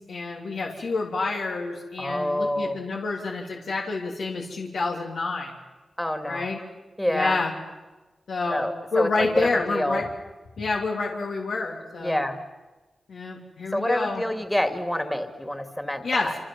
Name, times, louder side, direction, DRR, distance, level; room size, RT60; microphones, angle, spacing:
voice 1, 0.0-5.5 6.3-6.6 7.1-7.5 8.3-8.6 8.9-10.1 10.6-12.2 13.1-14.2 16.0-16.4, left 3 dB, 85° left, -1 dB, 3.2 m, -28 dB
voice 2, 2.0-2.8 6.0-6.5 7.0-7.4 8.5-10.0 12.0-12.4 13.7-16.4, left 1 dB, 10° left, 8 dB, 2.2 m, -27 dB
28.0 x 27.0 x 7.4 m, 1.2 s
wide cardioid pair, 80°, 0 cm